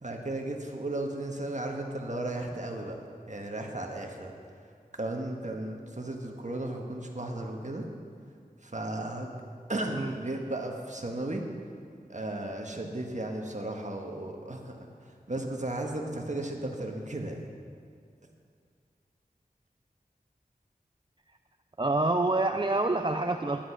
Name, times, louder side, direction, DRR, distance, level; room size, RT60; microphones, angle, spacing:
voice 1, 0.0-3.0 3.3-4.3 4.9-7.8 8.6-9.3 9.7-11.4 12.1-14.9 15.3-17.3, right 1 dB, 50° right, 2 dB, 1.4 m, -35 dB
voice 2, 21.8-23.6, right 2 dB, 30° right, 5 dB, 0.5 m, -27 dB
10.5 x 10.5 x 5.9 m, 2.2 s
wide cardioid pair, 50°, 16 cm